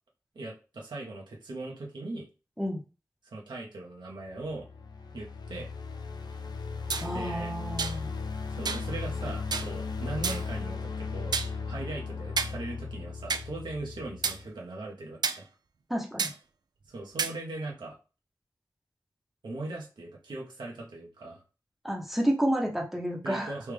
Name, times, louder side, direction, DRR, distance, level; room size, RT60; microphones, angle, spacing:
voice 1, 0.3-2.3 3.2-4.7 5.1-5.7 7.1-7.5 8.5-11.4 11.6-15.5 16.9-18.0 19.4-21.4 23.2-23.7, right 2 dB, 85° right, -2 dB, 1.0 m, -39 dB
sound 1, 4.3-14.5, left 4 dB, 65° left, 0.5 m, -37 dB
sound 2, 6.9-7.1 7.8-8.0 8.7-8.9 9.5-9.7 10.2-10.5 11.3-11.5 12.4-12.6 13.3-13.4 14.2-14.4 15.2-15.4 16.2-16.3 17.2-17.3, right 5 dB, 65° right, 0.4 m, -30 dB
voice 2, 7.0-8.1 15.9-16.3 21.8-23.5, equal, ahead, 0 dB, 0.9 m, -30 dB
3.3 x 2.4 x 3.3 m, 0.32 s
wide cardioid pair, 60°, 8 cm